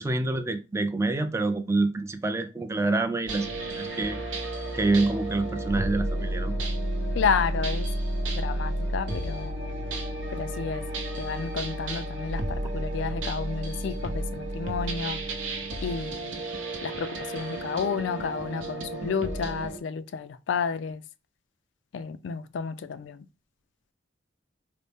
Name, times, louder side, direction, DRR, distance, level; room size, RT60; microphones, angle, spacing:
voice 1, 0.0-4.2 4.7-6.5, right 2 dB, 15° right, 0.3 m, -27 dB
sound 1, 3.3-19.8, right 1 dB, 90° right, 0.7 m, -32 dB
voice 2, 7.2-7.9 8.3-9.6 10.3-10.9 11.2-15.2 15.8-16.5 16.8-21.0 21.9-23.3, left 6 dB, 75° left, 0.3 m, -31 dB
4.0 x 2.0 x 3.4 m
head